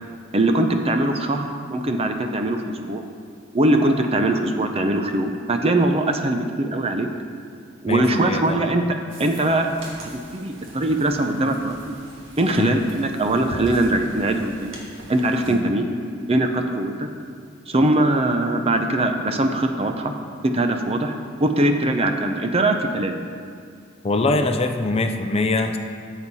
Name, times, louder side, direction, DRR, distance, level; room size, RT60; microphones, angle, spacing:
voice 1, 0.3-3.0 3.5-7.1 7.8-9.7 10.0-11.8 12.4-14.8 15.1-15.8 16.3-17.1 17.7-20.1 20.4-21.1 21.4-23.2, right 1 dB, 30° right, 5 dB, 0.7 m, -21 dB
voice 2, 7.9-8.6 12.6-12.8 15.5-15.6 24.0-25.8, left 2 dB, 30° left, 6 dB, 0.6 m, -23 dB
sound 1, 9.1-15.6, right 1 dB, 85° right, 1.8 m, -41 dB
13.5 x 7.1 x 4.2 m, 2.2 s
head